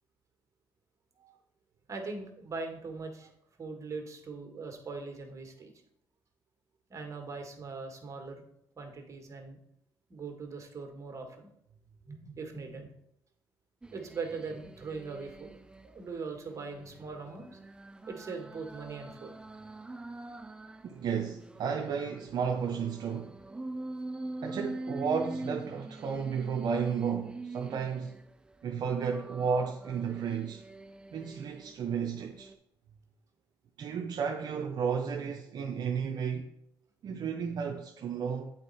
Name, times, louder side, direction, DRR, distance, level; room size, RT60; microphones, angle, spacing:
voice 1, 1.9-3.3 3.6-5.7 6.9-8.4 8.8-9.6 10.1-12.9 13.9-15.5 15.8-17.5 18.1-19.3 32.9-33.0, right 4 dB, 40° right, 1.6 m, -41 dB
sound 1, 13.8-15.9 16.4-20.9 21.3-28.3 28.8-31.7 32.2-32.5, right 2 dB, 10° right, 0.4 m, -44 dB
voice 2, 20.8-23.4 24.4-28.2 28.6-30.6 31.1-32.5 33.8-36.5 37.0-38.5, right 6 dB, 60° right, 0.6 m, -33 dB
8.0 x 4.2 x 4.1 m
cardioid pair, 75°, 8 cm